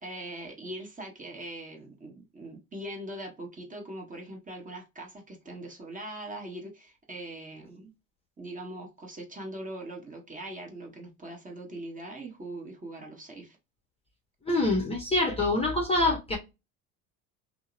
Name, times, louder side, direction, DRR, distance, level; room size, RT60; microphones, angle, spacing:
voice 1, 0.0-7.9 8.4-13.6, right 1 dB, 20° right, 0.9 m, -41 dB
voice 2, 14.5-16.4, left 2 dB, 15° left, 0.7 m, -25 dB
2.7 x 2.0 x 2.3 m
hypercardioid pair, 80°, 41 cm